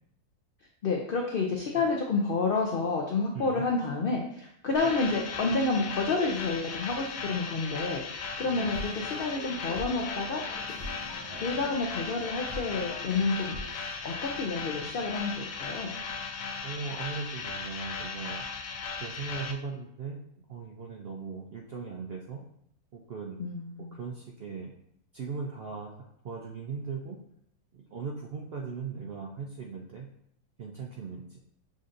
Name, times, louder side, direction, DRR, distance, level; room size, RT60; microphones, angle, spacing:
voice 1, 0.8-8.0 8.4-10.4 11.3-15.9 23.4-24.0, left 3 dB, 85° left, 0 dB, 0.4 m, -29 dB
voice 2, 3.3-3.7 8.4-8.8 16.6-18.4 19.0-20.2 20.5-22.4 22.9-23.4 23.9-24.7 25.1-25.9 26.2-27.2 27.7-30.1 30.6-31.4, right 5 dB, 75° right, -1 dB, 0.5 m, -38 dB
sound 1, 4.8-19.5, left 5 dB, 70° left, 0.9 m, -37 dB
sound 2, 8.5-14.9, left 1 dB, 15° left, 0.8 m, -44 dB
6.3 x 2.6 x 2.5 m, 0.70 s
omnidirectional pair, 1.6 m